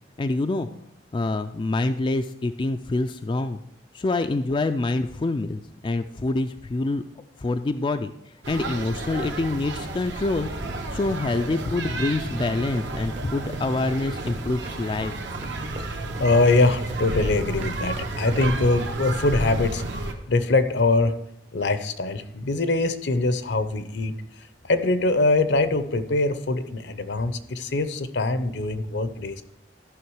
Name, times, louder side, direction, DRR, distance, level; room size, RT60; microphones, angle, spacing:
voice 1, 0.2-0.7 1.1-3.6 3.9-7.0 7.4-8.1 8.5-10.5 10.9-15.1, left 2 dB, 25° left, 7 dB, 0.3 m, -26 dB
sound 1, 8.4-20.1, right 2 dB, 75° right, 1.2 m, -31 dB
sound 2, 12.1-21.1, right 2 dB, 40° right, 0.7 m, -46 dB
voice 2, 16.2-21.1 21.5-29.4, left 2 dB, 70° left, 12 dB, 0.7 m, -23 dB
13.0 x 5.8 x 4.7 m, 0.76 s
head